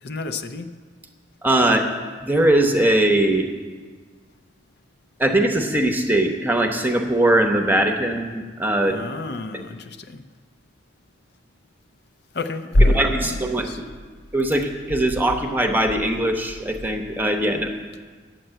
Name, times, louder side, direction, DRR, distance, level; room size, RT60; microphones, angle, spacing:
voice 1, 0.0-0.7 8.9-10.2 12.3-13.8, left 1 dB, 55° left, 7 dB, 0.6 m, -24 dB
voice 2, 1.4-1.9 2.2-3.5 5.2-9.0 9.5-9.6 12.9-13.8 14.3-17.7, right 1 dB, 10° right, 4 dB, 0.9 m, -20 dB
11.0 x 7.8 x 9.0 m, 1.5 s
head